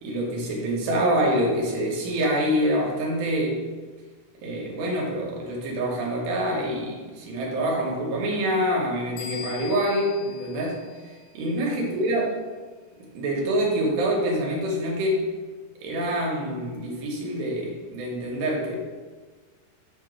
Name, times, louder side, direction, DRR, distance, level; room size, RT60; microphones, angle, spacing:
voice 1, 0.0-3.7 4.4-10.8 11.3-12.3 13.1-15.2 15.8-18.8, equal, 80° right, -2 dB, 3.1 m, -26 dB
sound 1, 9.2-11.7, left 7 dB, 80° left, 3.3 m, -42 dB
7.3 x 2.9 x 6.0 m, 1.4 s
omnidirectional pair, 5.0 m